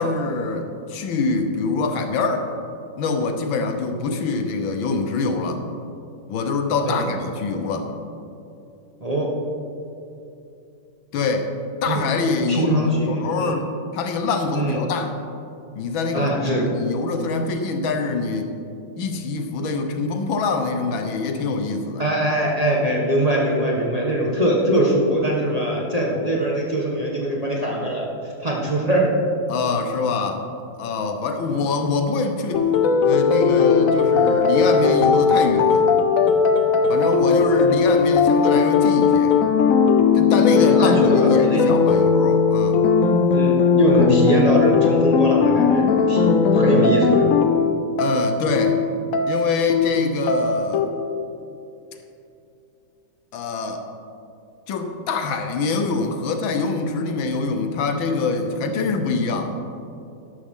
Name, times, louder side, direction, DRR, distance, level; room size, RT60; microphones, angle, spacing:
voice 1, 0.0-2.5 3.0-5.6 6.3-7.9 11.1-11.5 11.8-15.1 15.8-18.5 19.0-22.1 29.5-30.4 30.8-32.7 33.0-35.8 36.9-39.4 40.1-42.8 48.0-48.8 49.3-50.9 53.3-53.8 54.7-59.5, left 3 dB, 80° left, 6 dB, 1.7 m, -24 dB
voice 2, 9.0-9.3 11.9-12.1 12.5-13.6 14.5-14.8 16.1-16.6 22.0-29.1 31.5-31.6 40.5-41.6 43.3-47.3, right 1 dB, 20° right, -3 dB, 1.2 m, -22 dB
sound 1, 32.5-50.8, left 5 dB, 60° left, 0.9 m, -18 dB
13.0 x 12.0 x 3.8 m, 2.7 s
omnidirectional pair, 2.1 m